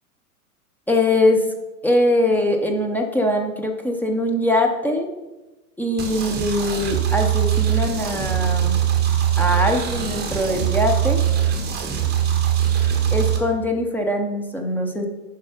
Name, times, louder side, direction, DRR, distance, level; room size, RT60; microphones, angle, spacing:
voice 1, 0.9-1.5 1.8-5.1 5.8-8.8 9.4-11.2 13.1-15.1, left 1 dB, 5° left, 2 dB, 0.6 m, -22 dB
sound 1, 6.0-13.4, right 10 dB, 20° right, 1.4 m, -21 dB
7.2 x 5.4 x 5.5 m, 1.1 s
hypercardioid pair, 120°, 45 cm